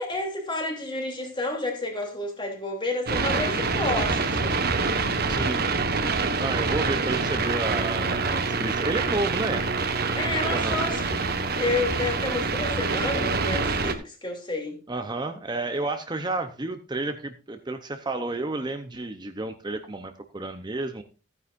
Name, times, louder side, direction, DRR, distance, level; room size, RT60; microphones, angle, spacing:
voice 1, 0.0-4.6 10.2-11.2 11.6-14.8, left 2 dB, 25° left, 2.9 m, -30 dB
sound 1, 3.1-13.9, right 4 dB, 50° right, 1.3 m, -26 dB
voice 2, 5.3-5.6 6.4-9.6 10.5-10.8 14.9-21.0, right 2 dB, 20° right, 0.7 m, -31 dB
15.0 x 9.6 x 2.5 m
head